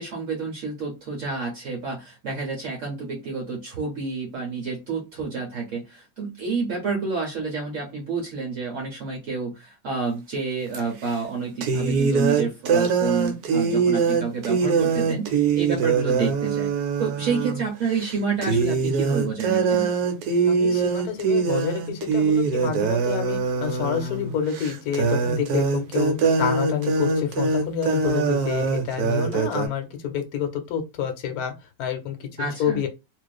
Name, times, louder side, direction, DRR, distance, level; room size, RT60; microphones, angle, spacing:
voice 1, 0.0-16.7 17.0-19.9 32.4-32.8, right 4 dB, 60° right, 1.0 m, -29 dB
sound 1, 10.7-10.8 11.6-17.6 18.0-18.2 18.4-29.7, right 5 dB, 85° right, 1.1 m, -23 dB
voice 2, 20.5-31.5 31.8-32.9, left 8 dB, 75° left, 1.1 m, -28 dB
2.4 x 2.4 x 2.2 m
omnidirectional pair, 1.6 m